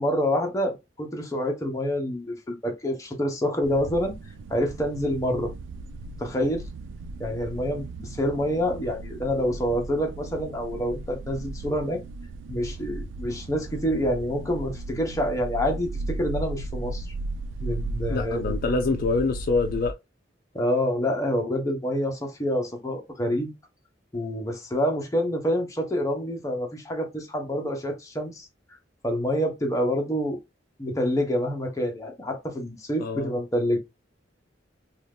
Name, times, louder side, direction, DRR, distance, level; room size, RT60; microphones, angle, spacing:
voice 1, 0.0-4.1 4.5-5.5 6.2-6.6 7.2-12.0 12.5-17.1 17.6-18.5 20.5-23.5 24.1-28.5 29.0-30.4 30.8-33.8, equal, 15° left, 0.8 m, -27 dB
sound 1, 3.6-19.9, right 2 dB, 85° right, 0.3 m, -36 dB
voice 2, 18.1-19.9 33.0-33.4, left 3 dB, 50° left, 0.4 m, -25 dB
2.7 x 2.3 x 3.4 m
head